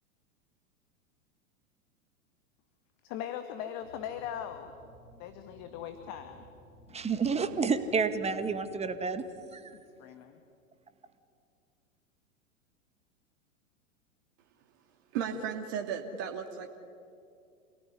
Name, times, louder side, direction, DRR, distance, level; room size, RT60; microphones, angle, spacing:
voice 1, 3.0-4.7 5.2-6.4 10.0-10.4, left 9 dB, 40° left, 7 dB, 2.0 m, -39 dB
sound 1, 3.8-9.6, left 1 dB, 85° left, 6.6 m, -57 dB
voice 2, 6.9-9.2 9.5-9.8, right 5 dB, 15° right, 9 dB, 1.9 m, -30 dB
voice 3, 15.1-16.7, right 7 dB, 45° right, 3 dB, 2.4 m, -35 dB
28.0 x 18.5 x 9.7 m, 2.4 s
figure-of-eight pair, 100°, 41 cm